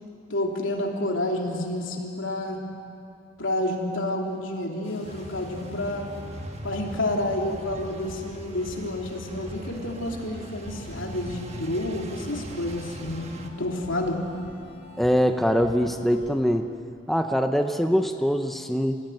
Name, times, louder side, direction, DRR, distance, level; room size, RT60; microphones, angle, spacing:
voice 1, 0.3-2.6 3.4-6.1 6.6-13.3 13.6-14.2, left 1 dB, 85° left, 1 dB, 3.1 m, -29 dB
sound 1, 4.8-16.3, left 1 dB, 30° left, 3.4 m, -45 dB
sound 2, 5.0-13.5, right 1 dB, 35° right, 1.3 m, -41 dB
voice 2, 15.0-16.7 17.1-19.0, equal, ahead, 5 dB, 0.8 m, -23 dB
26.5 x 16.0 x 9.2 m, 2.5 s
head